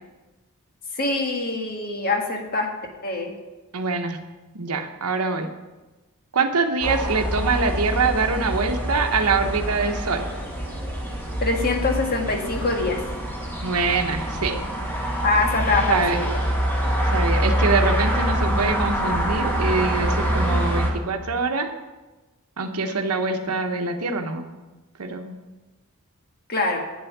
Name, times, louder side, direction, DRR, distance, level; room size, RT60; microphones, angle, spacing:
voice 1, 0.9-2.7 3.0-3.3 11.4-13.0 15.2-16.3 26.5-26.8, left 3 dB, 45° left, 2 dB, 1.6 m, -24 dB
voice 2, 3.7-4.2 4.5-5.5 6.3-10.3 13.6-14.6 15.9-16.2 17.1-21.7 22.6-24.5 25.0-25.3, right 4 dB, 85° right, 6 dB, 1.0 m, -24 dB
sound 1, 6.8-20.9, equal, 10° left, 1.7 m, -25 dB
8.7 x 7.9 x 6.0 m, 1.1 s
head